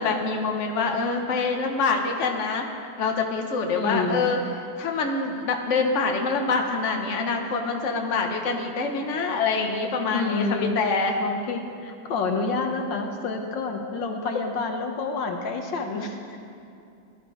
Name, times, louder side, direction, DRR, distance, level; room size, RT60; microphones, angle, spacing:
voice 1, 0.0-2.6 3.0-4.4 4.8-11.1, left 4 dB, 40° left, 2 dB, 1.4 m, -25 dB
voice 2, 3.7-4.3 10.1-10.8 11.2-16.4, left 3 dB, 70° left, 4 dB, 1.8 m, -28 dB
20.5 x 12.0 x 4.9 m, 2.5 s
omnidirectional pair, 2.1 m